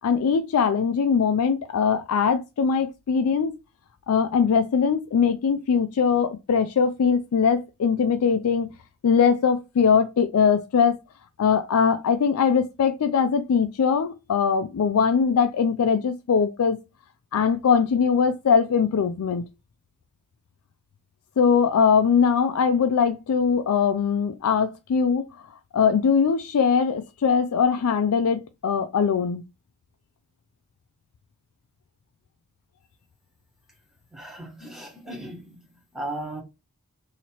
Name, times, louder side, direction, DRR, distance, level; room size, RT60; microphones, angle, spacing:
voice 1, 0.0-3.5 4.1-8.7 9.0-11.0 11.4-16.8 17.3-19.4 21.4-25.3 25.7-29.4, left 6 dB, 80° left, 0.4 m, -21 dB
voice 2, 34.1-35.6 35.9-36.4, right 1 dB, ahead, 1.1 m, -36 dB
3.0 x 2.8 x 4.2 m
head